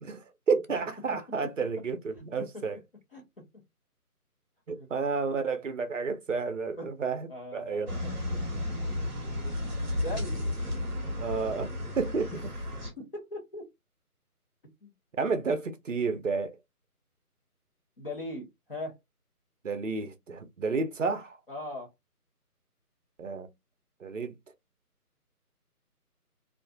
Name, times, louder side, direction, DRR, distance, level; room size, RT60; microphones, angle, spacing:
voice 1, 0.0-2.8 4.7-7.9 11.2-11.7 12.0-12.4 15.2-16.6 19.6-21.4 23.2-23.5 24.0-24.4, right 4 dB, 55° right, 0.5 m, -31 dB
voice 2, 7.3-9.6 10.0-10.4 13.0-13.6 14.8-14.9 18.0-18.9 21.5-21.9, left 1 dB, 35° left, 0.9 m, -40 dB
sound 1, 7.9-12.9, left 1 dB, 30° right, 0.9 m, -33 dB
2.5 x 2.3 x 2.2 m
figure-of-eight pair, 170°, 46 cm